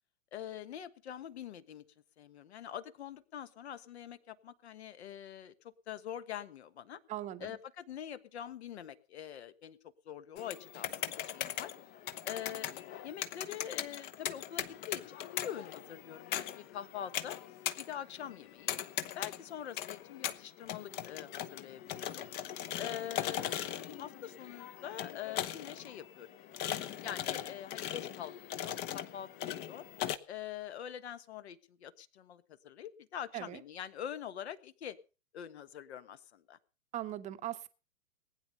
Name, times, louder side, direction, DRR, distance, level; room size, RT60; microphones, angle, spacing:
voice 1, 0.3-1.8 2.2-5.5 5.9-7.0 7.4-9.8 10.0-11.7 12.2-12.7 13.0-17.4 17.8-18.8 19.1-22.2 22.8-23.5 23.9-26.3 27.0-29.9 30.3-35.0 35.3-36.6, left 10 dB, 50° left, 13 dB, 1.5 m, -44 dB
voice 2, 7.1-7.5 33.3-33.6 36.9-37.7, right 13 dB, 15° right, 10 dB, 1.0 m, -39 dB
sound 1, 10.4-30.2, left 11 dB, 25° left, 0.9 m, -40 dB
19.5 x 9.5 x 5.4 m, 0.35 s
figure-of-eight pair, 110°, 40 cm